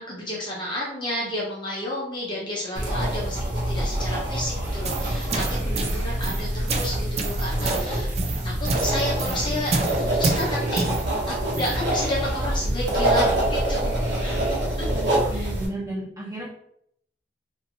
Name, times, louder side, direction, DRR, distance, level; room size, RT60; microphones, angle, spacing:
voice 1, 0.0-8.1 8.4-10.8 11.3-13.9 14.2-15.5, left 1 dB, 25° left, -4 dB, 0.7 m, -31 dB
sound 1, 2.7-15.7, right 1 dB, 85° right, 1.0 m, -25 dB
sound 2, 4.6-11.9, right 3 dB, 40° right, 0.4 m, -30 dB
voice 2, 14.8-16.5, right 1 dB, 20° right, -6 dB, 1.1 m, -34 dB
2.8 x 2.6 x 2.6 m, 0.71 s
head